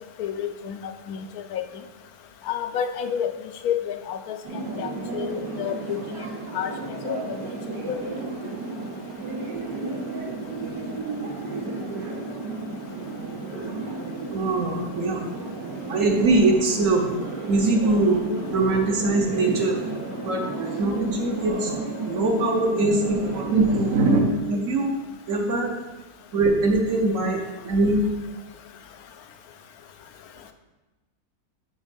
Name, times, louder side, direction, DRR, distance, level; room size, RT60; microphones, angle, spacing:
voice 1, 0.2-0.8 1.1-1.6 2.5-3.3 3.6-6.0 6.5-7.5 7.9-8.0, left 9 dB, 70° left, 7 dB, 1.0 m, -30 dB
sound 1, 4.4-24.2, right 3 dB, 85° right, 2.3 m, -33 dB
voice 2, 14.3-15.2 15.9-17.1 17.5-18.2 18.5-19.8 20.2-21.7 22.0-25.0 25.3-25.7 26.3-28.0, right 2 dB, 55° right, 3 dB, 1.1 m, -22 dB
6.3 x 5.0 x 5.2 m, 1.1 s
omnidirectional pair, 1.8 m